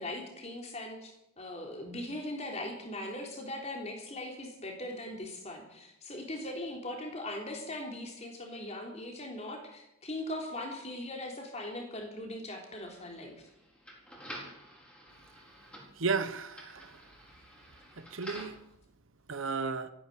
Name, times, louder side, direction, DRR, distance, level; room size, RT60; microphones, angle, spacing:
voice 1, 0.0-13.5, left 1 dB, 30° left, 3.5 m, -40 dB
sound 1, 12.8-18.6, equal, 5° left, 4.0 m, -50 dB
voice 2, 15.9-17.0 18.0-18.6 19.3-19.9, right 4 dB, 60° right, 1.0 m, -33 dB
14.5 x 10.5 x 8.2 m
head